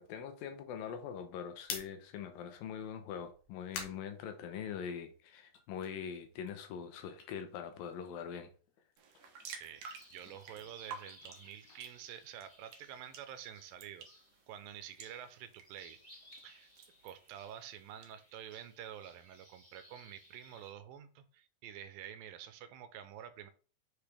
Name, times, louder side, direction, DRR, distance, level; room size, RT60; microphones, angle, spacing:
voice 1, 0.0-8.5, left 7 dB, 80° left, 2.6 m, -43 dB
sound 1, 1.6-5.0 5.4-8.4 8.6-12.8, left 6 dB, 65° left, 2.4 m, -50 dB
sound 2, 9.0-18.1, right 5 dB, 60° right, 1.8 m, -53 dB
voice 2, 9.5-14.1 14.5-16.0 16.4-16.7 17.0-23.5, right 10 dB, 80° right, 2.4 m, -49 dB
sound 3, 9.7-20.7, left 1 dB, 15° left, 1.7 m, -61 dB
6.4 x 5.0 x 3.5 m
omnidirectional pair, 4.1 m